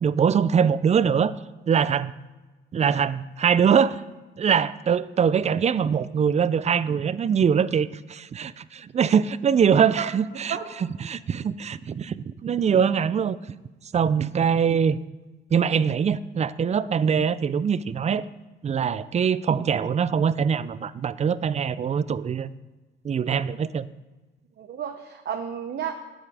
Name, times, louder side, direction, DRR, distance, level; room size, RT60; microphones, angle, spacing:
voice 1, 0.0-1.3 1.7-2.1 2.7-4.0 4.4-13.4 13.9-15.0 15.5-18.3 18.6-22.5 23.0-23.9, right 7 dB, 35° right, 17 dB, 0.4 m, -23 dB
voice 2, 10.3-10.7 24.6-25.9, right 8 dB, 60° right, 5 dB, 0.9 m, -32 dB
9.0 x 8.7 x 4.8 m, 1.2 s
cardioid pair, 90°, 20 cm